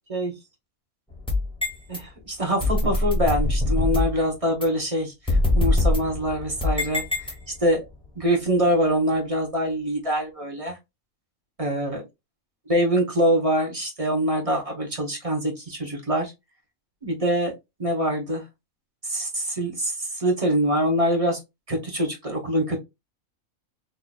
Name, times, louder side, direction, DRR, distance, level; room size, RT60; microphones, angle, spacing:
sound 1, 1.1-2.0 2.6-4.2 4.6-4.7 5.3-7.7, left 2 dB, 5° left, 0.7 m, -23 dB
voice 1, 1.9-7.3 7.6-7.8 8.1-10.8 11.6-11.9 12.7-16.3 17.0-17.5 17.8-18.4 19.0-21.4 21.7-22.8, equal, 30° right, 0 dB, 1.0 m, -24 dB
3.8 x 2.8 x 2.2 m, 0.22 s
omnidirectional pair, 1.5 m